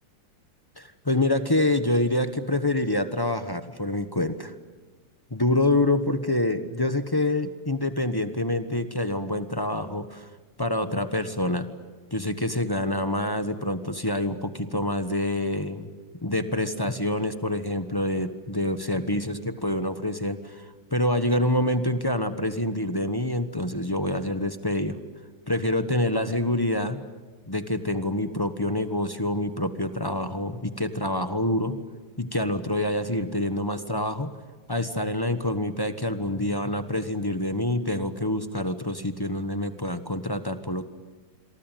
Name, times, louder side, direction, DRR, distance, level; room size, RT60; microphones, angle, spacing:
voice 1, 0.8-4.5 5.3-10.3 10.6-11.7 12.1-15.9 16.2-20.6 20.9-25.0 25.5-27.0 27.5-31.8 32.2-34.3 34.7-40.8, left 1 dB, 15° left, 10 dB, 0.9 m, -26 dB
27.0 x 23.5 x 9.1 m, 1.3 s
omnidirectional pair, 2.1 m